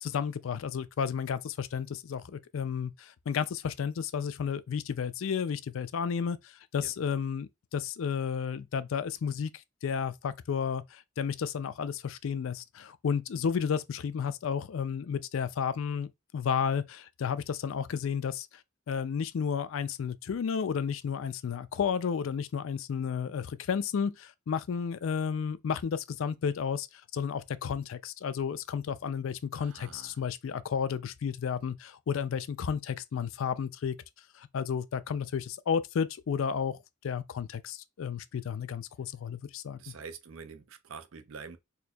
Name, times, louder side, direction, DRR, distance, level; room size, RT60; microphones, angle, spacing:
voice 1, 0.0-6.4 6.7-9.5 9.8-18.5 18.9-26.9 27.1-34.0 34.4-36.8 37.0-39.8, left 7 dB, 70° left, 0.4 m, -32 dB
voice 2, 29.5-30.2 39.8-41.6, right 5 dB, 75° right, 0.5 m, -46 dB
4.3 x 2.7 x 2.3 m
head